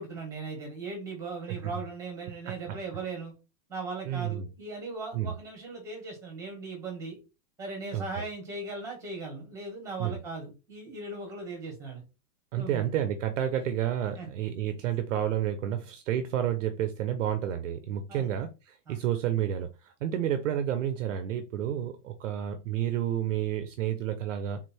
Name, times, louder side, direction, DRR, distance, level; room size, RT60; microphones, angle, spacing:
voice 1, 0.0-3.3 3.7-7.2 7.6-12.0 12.5-12.9 14.2-14.3 18.1-18.3 18.9-19.0, right 3 dB, 5° right, 1.6 m, -38 dB
voice 2, 2.4-2.8 4.1-4.5 5.1-5.3 7.9-8.2 10.0-10.2 12.5-24.6, right 10 dB, 50° right, 0.7 m, -30 dB
3.7 x 3.2 x 4.4 m
supercardioid pair, 175°, 48 cm